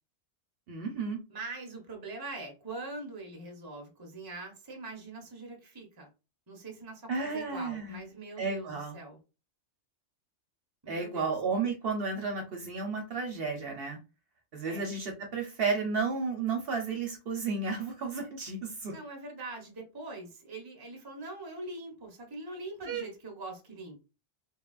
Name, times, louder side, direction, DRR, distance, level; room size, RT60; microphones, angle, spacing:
voice 1, 0.7-1.2 7.1-8.0 8.4-9.0 10.9-14.0 14.5-18.9 22.9-23.1, right 4 dB, 60° right, 0.7 m, -32 dB
voice 2, 1.3-6.1 6.5-9.2 10.8-11.3 14.6-14.8 18.9-24.0, right 2 dB, 25° right, 0.6 m, -43 dB
3.0 x 2.3 x 2.3 m
omnidirectional pair, 1.2 m